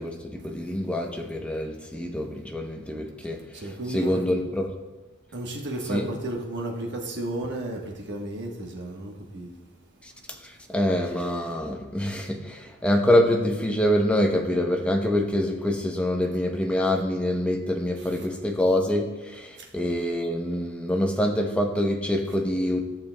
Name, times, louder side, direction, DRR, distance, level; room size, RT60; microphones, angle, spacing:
voice 1, 0.0-3.6 3.9-4.7 5.9-6.1 10.0-22.8, left 1 dB, 5° left, 3 dB, 0.7 m, -25 dB
voice 2, 3.5-4.2 5.3-9.5 18.0-18.3, right 2 dB, 50° right, 0 dB, 1.2 m, -33 dB
13.5 x 6.7 x 2.2 m, 1.2 s
head